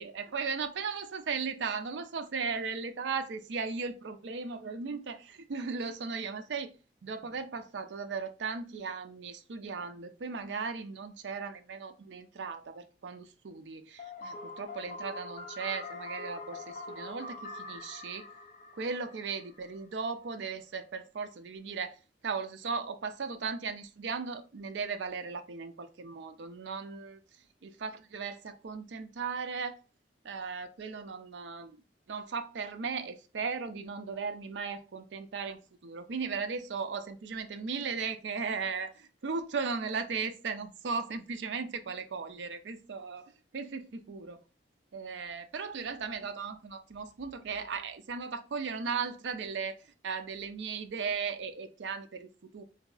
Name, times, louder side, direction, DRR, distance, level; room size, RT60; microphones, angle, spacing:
voice 1, 0.0-6.7 7.0-18.3 18.7-29.8 30.2-31.8 32.1-44.4 44.9-52.6, right 5 dB, 75° right, 0.5 m, -37 dB
sound 1, 14.0-19.8, left 3 dB, 45° left, 0.4 m, -44 dB
3.9 x 2.7 x 2.3 m
head